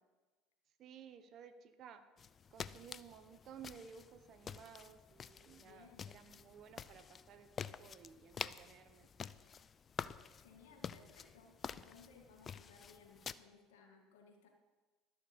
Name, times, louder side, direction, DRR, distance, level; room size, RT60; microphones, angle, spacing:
voice 1, 0.8-2.0 2.5-9.1, right 7 dB, 50° right, 9 dB, 1.0 m, -56 dB
sound 1, 2.2-13.3, left 7 dB, 35° left, 0.4 m, -49 dB
voice 2, 5.6-6.1 10.3-14.5, left 5 dB, 80° left, 2 dB, 2.0 m, -62 dB
12.0 x 6.9 x 5.4 m, 1.3 s
hypercardioid pair, 80°, 0 cm